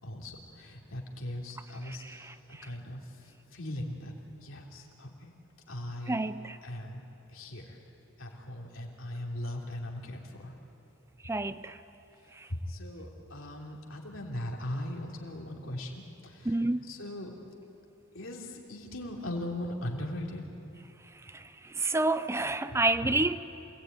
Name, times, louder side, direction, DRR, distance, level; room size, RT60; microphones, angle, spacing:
voice 1, 0.0-2.3 2.6-4.1 4.4-5.3 5.7-6.3 6.6-7.0 7.3-7.8 8.2-10.5 12.5-17.4 18.1-20.5 22.7-23.1, left 1 dB, 65° left, 3.3 m, -39 dB
voice 2, 6.1-6.6 11.2-11.7 16.5-16.9 21.8-23.4, right 2 dB, 10° right, 0.5 m, -28 dB
27.0 x 19.0 x 9.4 m
head